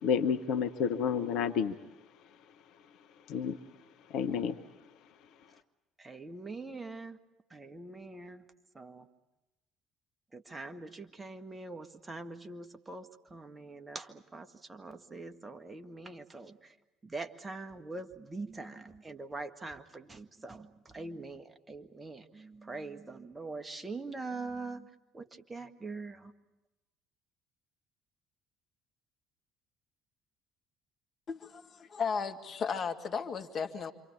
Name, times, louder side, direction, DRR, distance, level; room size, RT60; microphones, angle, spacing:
voice 1, 0.0-1.7 3.3-3.6 4.1-4.6, left 7 dB, 65° left, 8 dB, 1.0 m, -30 dB
voice 2, 6.0-7.2 7.5-8.4 8.7-9.1 10.3-16.7 17.0-26.3, right 3 dB, 20° right, 7 dB, 1.6 m, -43 dB
voice 3, 31.3-33.9, left 6 dB, 45° left, 5 dB, 1.9 m, -35 dB
27.0 x 25.5 x 8.5 m, 1.0 s
hypercardioid pair, 55°, 0 cm